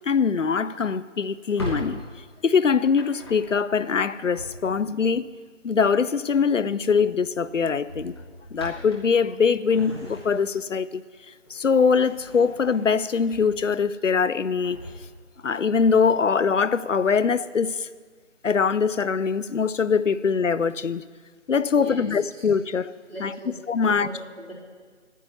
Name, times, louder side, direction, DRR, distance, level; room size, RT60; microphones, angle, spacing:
voice 1, 0.1-2.0 2.4-5.3 5.6-8.1 8.5-11.0 11.5-14.8 15.4-17.9 18.4-21.0 21.5-22.9 23.2-24.1, left 5 dB, 85° left, 0.6 m, -22 dB
Drawer open or close, 1.3-5.0 6.5-6.8 7.1-7.3 7.8-10.7 11.1-13.9 14.3-16.2, left 1 dB, 20° left, 1.5 m, -40 dB
voice 2, 21.6-22.4 23.1-23.5 23.8-24.5, right 1 dB, 50° right, 3.5 m, -39 dB
10.5 x 9.2 x 7.1 m
figure-of-eight pair, 165°, 37 cm